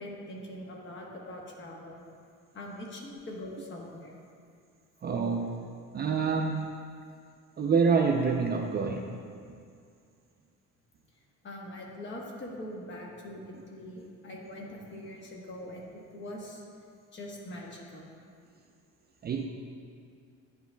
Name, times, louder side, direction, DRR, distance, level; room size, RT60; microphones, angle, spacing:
voice 1, 0.0-2.1 2.5-4.2 11.4-16.6 17.1-18.1, left 1 dB, 35° left, -1 dB, 1.1 m, -42 dB
voice 2, 5.0-5.7 5.9-6.7 7.6-9.1 19.2-19.5, right 5 dB, 30° right, 2 dB, 0.4 m, -27 dB
10.0 x 5.6 x 2.2 m, 2.3 s
cardioid pair, 125°, 32 cm